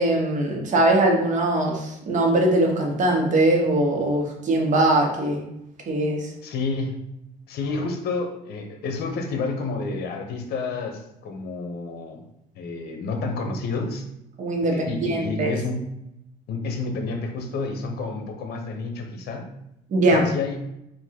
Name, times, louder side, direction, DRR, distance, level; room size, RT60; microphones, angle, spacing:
voice 1, 0.0-5.4 5.9-6.3 14.4-15.5 19.9-20.2, right 1 dB, 45° right, 1 dB, 1.1 m, -21 dB
voice 2, 6.4-7.0 7.5-12.2 12.5-14.0 14.6-15.8 16.5-19.5 20.1-20.6, left 3 dB, 70° left, 5 dB, 0.8 m, -29 dB
3.6 x 2.6 x 4.4 m, 0.82 s
cardioid pair, 110°, 17 cm